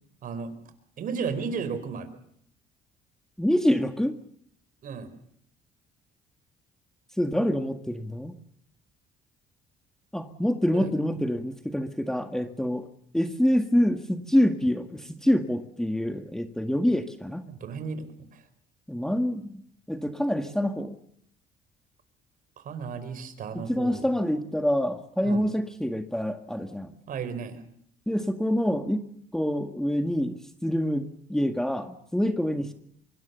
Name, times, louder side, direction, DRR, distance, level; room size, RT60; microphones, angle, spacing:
voice 1, 0.2-0.6 1.0-2.1 4.8-5.1 10.7-10.9 17.5-18.1 18.3-18.4 22.6-24.1 25.2-25.4 27.1-27.6, right 5 dB, 55° right, 11 dB, 4.5 m, -34 dB
voice 2, 3.4-4.1 7.2-8.4 10.1-12.9 13.1-17.5 18.9-19.6 19.9-21.0 23.5-26.9 28.1-29.0 29.3-32.7, equal, 5° left, 6 dB, 1.8 m, -26 dB
25.0 x 23.5 x 7.0 m, 0.68 s
cardioid pair, 110°, 17 cm